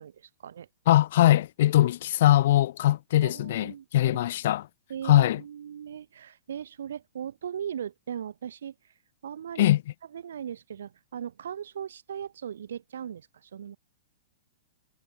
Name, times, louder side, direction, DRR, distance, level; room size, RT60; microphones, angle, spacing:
voice 1, 0.0-0.7 3.2-4.2 4.9-8.9 9.2-9.7 10.1-13.8, right 9 dB, 75° right, 5.0 m, -38 dB
voice 2, 0.9-4.6 5.0-5.4 9.6-9.8, left 13 dB, 60° left, 1.2 m, -21 dB
hypercardioid pair, 125°, 0 cm